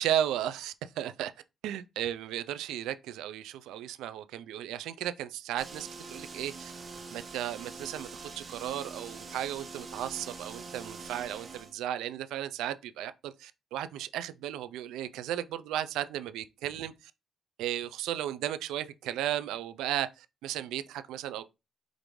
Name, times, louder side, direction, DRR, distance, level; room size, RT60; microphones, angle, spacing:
voice 1, 0.0-1.3 1.6-6.7 7.1-16.9 17.6-21.4, right 11 dB, 90° right, 0.3 m, -35 dB
sound 1, 5.6-11.7, right 4 dB, 40° right, 1.0 m, -44 dB
5.0 x 2.5 x 3.1 m
cardioid pair, 90°, 0 cm